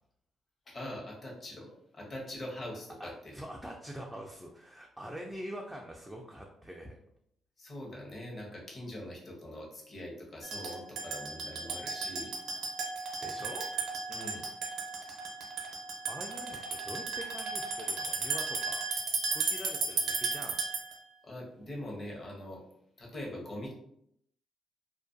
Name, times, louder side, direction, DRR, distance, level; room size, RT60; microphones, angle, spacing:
voice 1, 0.7-3.3 7.6-12.3 14.1-14.5 21.2-22.6 23.0-23.7, left 1 dB, 40° left, -2 dB, 0.8 m, -43 dB
voice 2, 3.0-7.0 13.2-13.7 16.1-18.9 19.3-20.6, equal, 5° right, -1 dB, 0.3 m, -44 dB
sound 1, 10.4-21.0, right 4 dB, 75° right, 0.6 m, -35 dB
2.4 x 2.2 x 2.5 m, 0.73 s
cardioid pair, 90°, 0 cm